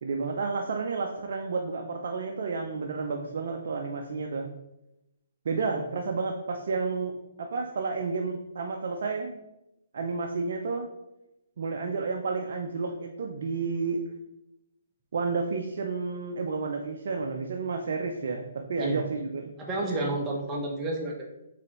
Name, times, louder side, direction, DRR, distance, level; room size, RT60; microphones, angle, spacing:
voice 1, 0.0-4.5 5.4-7.1 7.4-9.3 9.9-10.9 11.6-14.0 15.1-19.5, right 4 dB, 65° right, 2 dB, 0.5 m, -31 dB
voice 2, 19.6-21.3, right 2 dB, 20° right, -1 dB, 0.9 m, -30 dB
4.8 x 3.4 x 3.0 m, 0.90 s
hypercardioid pair, 145°, 0 cm